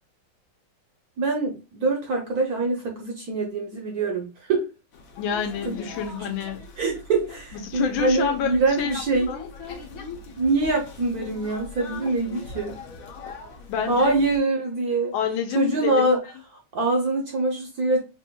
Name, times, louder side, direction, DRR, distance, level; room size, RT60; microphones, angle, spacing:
voice 1, 1.2-4.7 5.6-5.7 6.8-9.3 10.4-12.8 13.9-15.1 15.5-16.2 16.7-18.0, right 3 dB, 60° right, 1.0 m, -24 dB
sound 1, 4.9-14.4, left 4 dB, 60° left, 0.9 m, -41 dB
voice 2, 5.2-6.6 7.5-9.5 13.7-14.1 15.1-16.2, left 8 dB, 75° left, 1.4 m, -28 dB
4.8 x 3.0 x 2.2 m
omnidirectional pair, 2.3 m